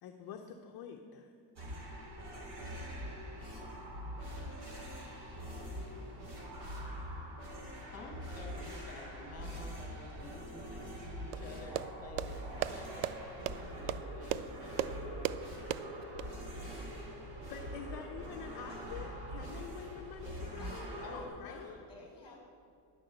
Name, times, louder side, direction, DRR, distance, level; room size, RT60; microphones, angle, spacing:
voice 1, 0.0-1.3 17.5-21.8, left 7 dB, 50° left, 3 dB, 0.7 m, -47 dB
sound 1, 1.6-21.3, equal, 50° right, 3.1 m, -44 dB
voice 2, 7.9-12.4 12.7-15.4 21.0-21.9 22.2-22.4, left 1 dB, 30° left, 1 dB, 2.1 m, -51 dB
sound 2, 11.3-16.3, right 12 dB, 85° right, 0.5 m, -38 dB
voice 3, 20.3-21.0 21.7-22.4, left 1 dB, 10° left, -1 dB, 2.6 m, -52 dB
11.0 x 6.3 x 7.9 m, 2.6 s
cardioid pair, 170°, 48 cm